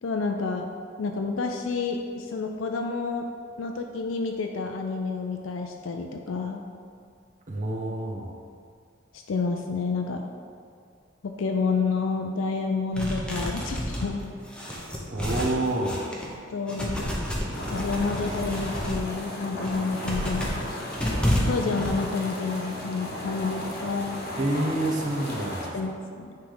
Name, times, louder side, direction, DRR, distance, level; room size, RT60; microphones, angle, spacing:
voice 1, 0.0-0.7 1.0-3.3 3.6-6.6 9.1-10.3 11.2-14.3 16.5-17.1 17.7-21.1 21.5-24.2 25.7-26.4, left 4 dB, 80° left, 3 dB, 0.4 m, -29 dB
voice 2, 7.5-8.3 15.1-16.0 24.4-25.7, right 1 dB, 40° right, 0 dB, 0.7 m, -28 dB
sound 1, 12.9-16.3 16.7-19.0 19.5-21.9, equal, 5° left, 0.8 m, -30 dB
sound 2, 17.5-25.7, left 1 dB, 50° left, 1.1 m, -35 dB
9.2 x 3.3 x 3.9 m, 2.3 s
head